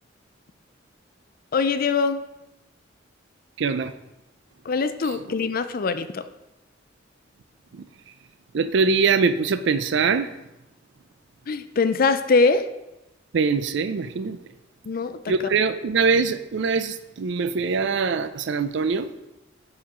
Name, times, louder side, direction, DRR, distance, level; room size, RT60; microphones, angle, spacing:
voice 1, 1.5-2.2 4.7-6.2 11.5-12.7 14.8-15.5, left 4 dB, 50° left, 11 dB, 0.4 m, -22 dB
voice 2, 3.6-3.9 8.5-10.3 13.3-14.4 15.3-19.1, right 5 dB, 65° right, 12 dB, 0.4 m, -23 dB
10.0 x 4.4 x 3.7 m, 0.94 s
head